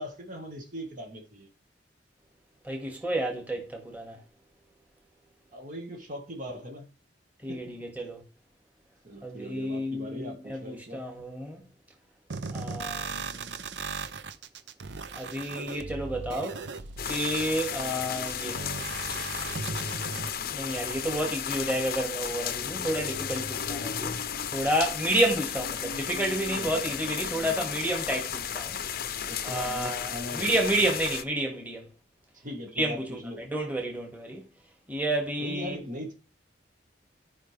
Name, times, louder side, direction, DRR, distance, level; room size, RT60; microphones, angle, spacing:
voice 1, 0.0-1.5 5.5-6.9 7.5-7.7 9.0-11.1 26.5-26.8 29.1-30.6 32.3-33.5 35.4-36.1, equal, 45° right, 1.6 m, -40 dB
voice 2, 2.7-4.2 7.4-8.2 9.2-11.6 12.5-13.6 15.1-16.6 17.1-18.6 20.5-24.2 24.5-28.8 29.4-31.9 32.8-34.4 34.9-35.8, right 1 dB, 10° right, 1.9 m, -30 dB
sound 1, 12.3-20.3, right 4 dB, 70° right, 0.7 m, -37 dB
sound 2, 17.0-31.2, left 8 dB, 55° left, 0.6 m, -34 dB
13.5 x 5.2 x 3.4 m
head